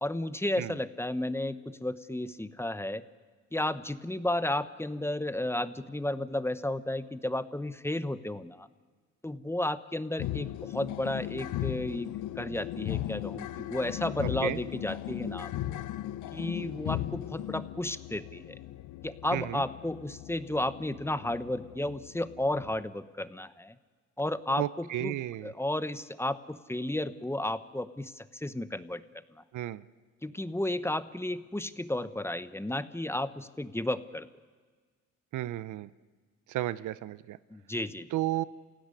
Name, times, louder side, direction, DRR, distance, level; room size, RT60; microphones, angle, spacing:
voice 1, 0.0-3.0 3.5-8.7 9.2-15.8 16.3-18.6 19.0-23.8 24.2-25.2 25.4-29.0 29.3-29.4 30.2-34.3 37.5-38.1, left 1 dB, 10° left, 13 dB, 1.1 m, -33 dB
sound 1, 10.2-22.8, left 13 dB, 85° left, 0.8 m, -37 dB
voice 2, 19.3-19.6 24.6-25.5 29.5-29.8 35.3-35.9 36.5-37.4 38.1-38.4, right 14 dB, 80° right, 17 dB, 0.8 m, -33 dB
29.0 x 16.5 x 9.8 m, 1.5 s
cardioid pair, 90°, 30 cm